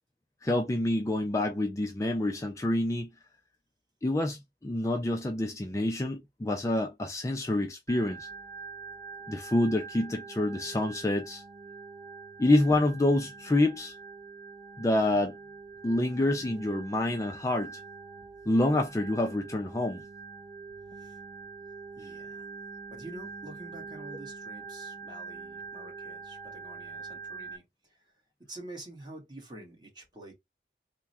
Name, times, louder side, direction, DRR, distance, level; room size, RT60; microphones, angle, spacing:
voice 1, 0.4-3.1 4.0-8.3 9.3-11.4 12.4-14.0 14.8-15.3 15.8-17.8 18.5-20.0, left 1 dB, 20° left, 0.4 m, -27 dB
Organ, 7.9-27.6, right 4 dB, 55° right, 0.9 m, -44 dB
voice 2, 22.0-22.5 22.9-28.1 28.5-30.3, right 1 dB, 25° right, 1.5 m, -47 dB
3.5 x 2.2 x 4.2 m
head